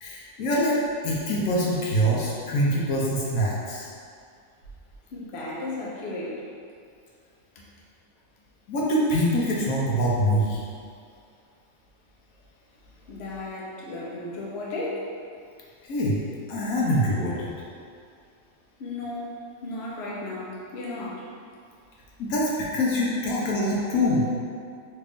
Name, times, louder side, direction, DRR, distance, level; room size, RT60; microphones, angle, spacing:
voice 1, 0.0-0.8 1.0-3.9 8.7-10.6 15.9-16.2 16.5-17.5 22.2-24.3, equal, 80° left, -5 dB, 1.1 m, -24 dB
voice 2, 5.1-6.4 7.6-7.7 13.1-15.1 18.8-21.3, left 2 dB, 60° left, -5 dB, 0.8 m, -34 dB
3.3 x 2.5 x 3.4 m, 2.3 s
omnidirectional pair, 1.5 m